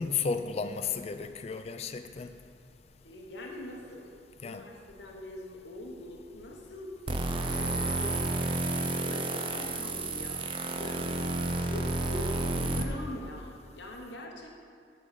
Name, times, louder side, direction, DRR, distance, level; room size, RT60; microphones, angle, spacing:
voice 1, 0.0-2.3 4.4-4.6, left 5 dB, 35° left, 9 dB, 0.3 m, -33 dB
voice 2, 3.0-4.1 4.4-6.9 7.4-8.2 9.0-14.5, left 1 dB, 75° left, 0 dB, 0.9 m, -43 dB
sound 1, 7.1-12.8, right 2 dB, 30° right, 0.5 m, -31 dB
8.4 x 3.9 x 6.5 m, 2.3 s
head